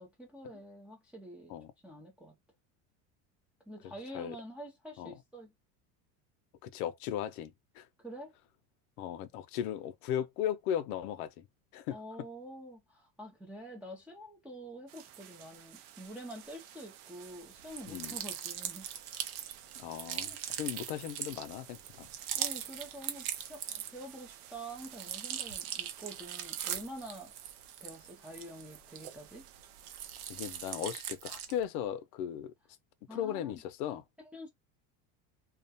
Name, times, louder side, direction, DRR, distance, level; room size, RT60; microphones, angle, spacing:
voice 1, 0.0-1.5 1.8-2.3 3.7-5.5 8.0-8.3 11.9-18.9 20.3-20.6 22.3-27.3 27.8-29.5 33.1-33.6 34.2-34.5, right 1 dB, 5° right, 0.5 m, -47 dB
voice 2, 6.6-7.9 9.0-11.5 11.7-12.0 17.9-18.2 19.8-22.1 30.3-32.5 33.1-34.0, left 10 dB, 80° left, 0.6 m, -37 dB
sound 1, 14.9-30.9, right 11 dB, 55° right, 0.6 m, -54 dB
sound 2, 17.7-24.2 24.5-29.4 29.8-31.6, right 10 dB, 85° right, 0.8 m, -40 dB
2.4 x 2.2 x 2.6 m
supercardioid pair, 140°, 43 cm